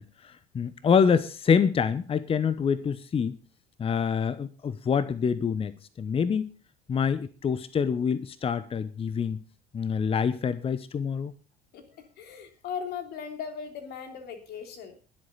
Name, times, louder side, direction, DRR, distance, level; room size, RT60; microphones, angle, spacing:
voice 1, 0.0-3.4 3.8-6.5 6.9-9.4 9.7-11.3, left 6 dB, 30° left, 16 dB, 0.9 m, -26 dB
voice 2, 11.7-15.0, left 7 dB, 55° left, 6 dB, 3.3 m, -38 dB
21.0 x 8.1 x 3.9 m, 0.36 s
figure-of-eight pair, 65°, 20 cm